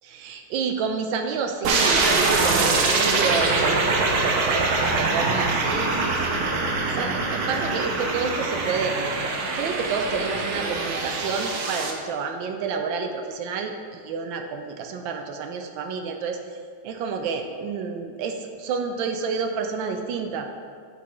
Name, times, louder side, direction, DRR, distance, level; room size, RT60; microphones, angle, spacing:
voice 1, 0.0-6.4 6.9-9.0 9.6-16.4 16.8-20.5, right 5 dB, 85° right, 5 dB, 1.3 m, -29 dB
sound 1, 1.6-11.9, right 3 dB, 60° right, 1.2 m, -23 dB
8.3 x 7.0 x 3.0 m, 2.1 s
omnidirectional pair, 2.0 m